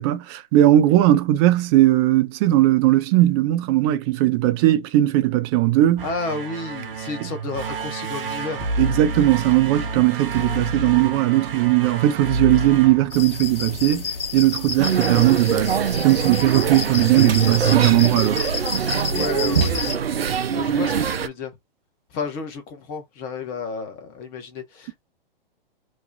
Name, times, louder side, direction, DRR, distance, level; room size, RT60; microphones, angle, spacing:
voice 1, 0.0-6.0 8.8-14.1 14.3-18.4, right 15 dB, 25° right, 0.5 m, -18 dB
sound 1, 5.8-13.8, right 3 dB, 65° right, 1.0 m, -29 dB
voice 2, 6.0-8.7 17.2-18.1 19.1-21.5 22.1-25.0, left 4 dB, 30° left, 1.1 m, -32 dB
sound 2, 13.1-20.0, left 4 dB, 70° left, 1.3 m, -30 dB
sound 3, 14.8-21.3, right 8 dB, 85° right, 0.6 m, -23 dB
3.1 x 2.3 x 3.8 m
hypercardioid pair, 120°, 29 cm